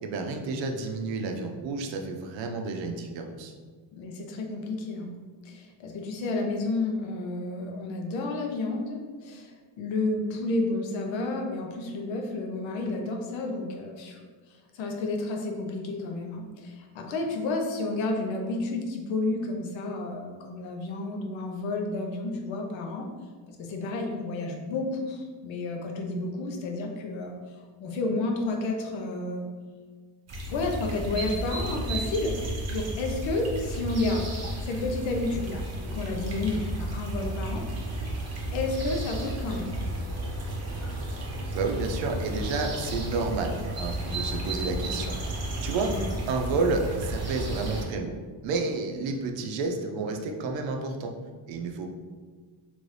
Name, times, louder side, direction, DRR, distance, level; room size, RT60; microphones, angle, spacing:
voice 1, 0.0-3.5 41.5-45.9 46.3-48.2 48.4-51.1 51.5-51.9, right 3 dB, 80° right, 4 dB, 0.6 m, -30 dB
voice 2, 3.9-5.1 5.4-14.2 14.7-23.1 23.5-27.3 27.8-29.5 30.5-32.4 32.7-34.3 34.6-37.6 38.5-39.8 45.8-46.1, left 2 dB, 85° left, 1 dB, 0.7 m, -31 dB
sound 1, 30.3-47.8, right 1 dB, 35° right, 0.8 m, -33 dB
3.0 x 2.6 x 3.2 m, 1.5 s
cardioid pair, 115°, 44 cm